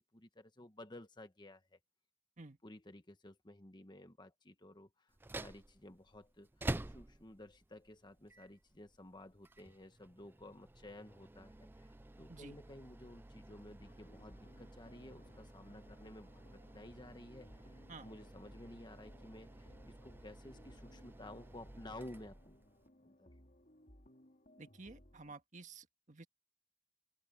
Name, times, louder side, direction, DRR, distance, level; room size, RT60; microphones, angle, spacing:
voice 1, 0.1-1.8 2.6-11.9 12.2-17.7 18.0-22.6 23.0-23.3, left 1 dB, 20° left, 1.3 m, -54 dB
sound 1, 5.1-22.9, right 1 dB, 10° right, 0.4 m, -50 dB
sound 2, 13.8-25.3, left 1 dB, 40° left, 3.5 m, -63 dB
voice 2, 24.6-26.3, right 3 dB, 40° right, 1.8 m, -52 dB
open air
head